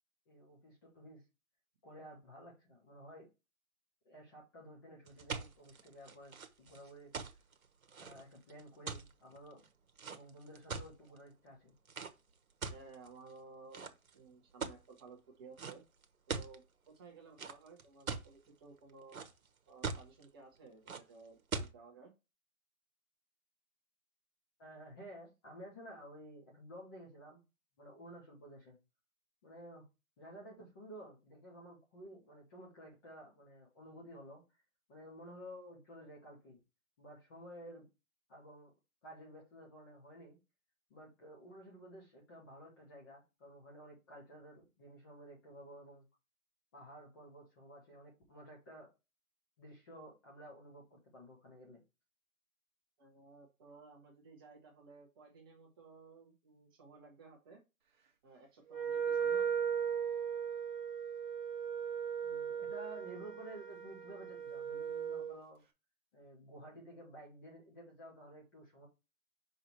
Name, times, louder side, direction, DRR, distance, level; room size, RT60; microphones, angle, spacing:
voice 1, 0.3-1.2 1.8-3.3 4.0-7.1 8.0-9.7 10.1-11.7 24.6-27.4 27.8-28.8 29.4-29.9 30.2-34.4 34.9-36.6 37.0-37.9 38.3-38.7 39.0-40.4 40.9-46.1 46.7-48.9 49.6-51.8 62.2-65.6 66.1-68.9, right 1 dB, 15° left, -3 dB, 0.9 m, -53 dB
sound 1, 5.1-11.2 11.8-12.1 12.6-13.3 13.7-14.1 14.6-15.0 15.6-15.7 16.0-16.6 17.4-18.3 18.8-19.5 19.8-20.2 20.9-21.0 21.5-21.7, right 4 dB, 75° right, 1.2 m, -41 dB
voice 2, 12.7-15.8 16.3-19.2 19.7-22.1 53.0-57.6 58.2-59.5, right 4 dB, 15° right, 0 dB, 1.1 m, -56 dB
Wind instrument woodwind instrument, 58.7-65.4, right 7 dB, 35° right, 0.8 m, -37 dB
5.6 x 3.8 x 4.4 m, 0.27 s
figure-of-eight pair, 155°, 42 cm